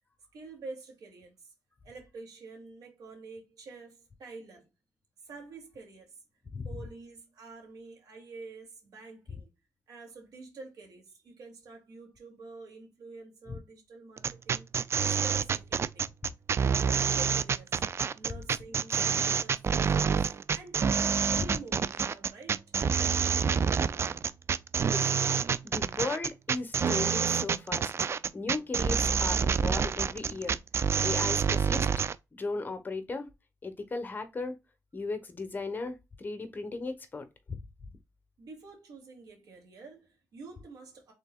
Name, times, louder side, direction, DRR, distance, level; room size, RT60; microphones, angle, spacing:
voice 1, 0.3-1.5 1.8-4.7 5.2-6.2 6.6-9.5 9.9-14.7 15.1-16.1 16.6-17.8 18.1-22.6 38.4-41.1, right 3 dB, 80° right, 2.4 m, -48 dB
sound 1, 14.2-32.1, right 6 dB, 40° right, 0.3 m, -27 dB
voice 2, 25.6-30.6 31.0-32.1 32.3-33.3 33.6-34.5 34.9-37.3, left 3 dB, 30° left, 1.0 m, -36 dB
5.5 x 3.7 x 2.3 m
cardioid pair, 95°, 7 cm